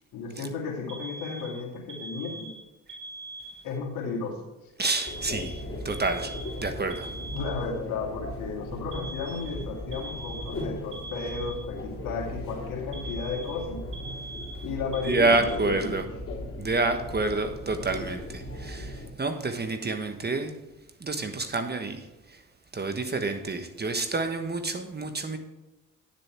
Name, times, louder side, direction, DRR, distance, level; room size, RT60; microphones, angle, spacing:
voice 1, 0.1-2.5 3.6-4.4 7.3-13.8 14.6-16.0, left 4 dB, 75° left, -1 dB, 2.5 m, -34 dB
Alarm, 0.9-3.9 4.9-7.9 8.9-11.9 12.9-15.9, right 2 dB, 65° right, 2.2 m, -42 dB
voice 2, 4.8-5.6 5.8-6.3 6.6-7.1 15.1-16.0 16.6-20.5 21.0-22.0 22.7-25.4, right 3 dB, 30° right, 7 dB, 1.3 m, -28 dB
sound 1, 5.1-19.1, left 1 dB, 40° left, 3.2 m, -38 dB
10.0 x 6.9 x 4.5 m, 1.0 s
supercardioid pair, 55°, 33 cm